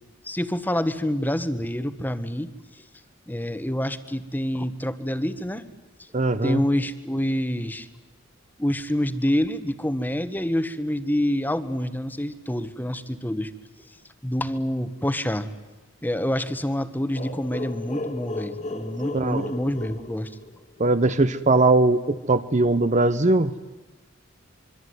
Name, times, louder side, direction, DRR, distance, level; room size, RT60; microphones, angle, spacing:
voice 1, 0.2-2.5 3.3-5.6 6.0-6.1 6.4-7.9 8.6-13.5 14.2-15.5 16.0-20.3, equal, 10° left, 12 dB, 1.4 m, -27 dB
voice 2, 6.1-6.6 19.1-19.5 20.8-23.5, right 2 dB, 35° right, 12 dB, 0.9 m, -20 dB
sound 1, 17.1-20.9, left 2 dB, 35° left, 2.1 m, -35 dB
26.0 x 24.0 x 9.6 m, 1.1 s
head